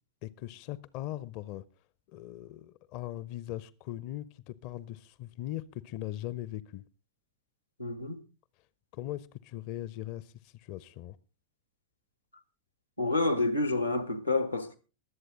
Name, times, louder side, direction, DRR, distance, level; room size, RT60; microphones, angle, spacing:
voice 1, 0.2-1.6 2.1-6.8 8.9-11.2, left 14 dB, 45° left, 0.6 m, -40 dB
voice 2, 7.8-8.2 13.0-14.8, left 2 dB, 85° left, 1.2 m, -28 dB
22.0 x 8.1 x 3.7 m
figure-of-eight pair, 90°, 0 cm